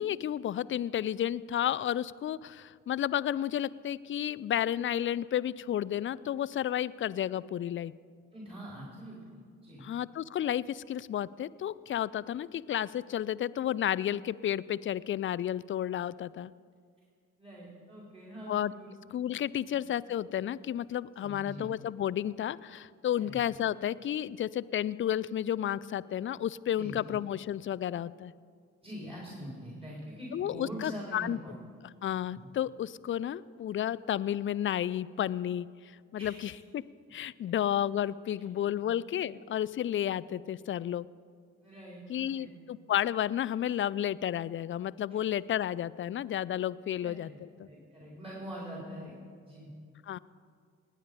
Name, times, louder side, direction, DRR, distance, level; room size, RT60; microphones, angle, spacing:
voice 1, 0.0-7.9 9.8-16.5 18.5-18.7 19.1-28.3 30.3-31.4 32.0-35.7 36.1-36.8 37.1-41.1 42.1-47.7 50.1-50.2, left 11 dB, 35° left, 20 dB, 0.4 m, -32 dB
voice 2, 8.3-9.8 17.4-18.9 19.6-19.7 21.2-21.7 23.2-23.4 26.8-27.2 28.8-31.5 32.3-32.5 36.2-36.4 38.8-38.9 41.6-42.5 45.1-45.2 47.0-47.4 47.7-49.1 49.4-49.7, equal, 15° right, -4 dB, 3.9 m, -44 dB
19.5 x 8.7 x 5.1 m, 2.2 s
hypercardioid pair, 45°, 36 cm